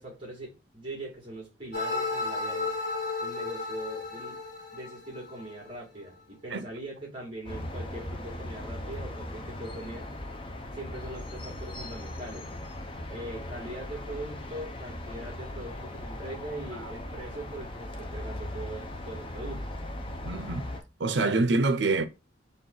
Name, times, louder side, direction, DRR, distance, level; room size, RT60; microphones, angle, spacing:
voice 1, 0.0-2.7 3.2-4.4 4.7-10.1 10.7-12.5 13.1-19.6, right 1 dB, 30° right, 2.4 m, -41 dB
sound 1, 1.7-5.7, left 3 dB, 65° left, 1.9 m, -33 dB
sound 2, 7.5-20.8, left 1 dB, 30° left, 0.6 m, -39 dB
voice 2, 20.2-20.7 21.0-22.1, right 3 dB, 70° right, 0.6 m, -25 dB
4.3 x 2.8 x 3.9 m
head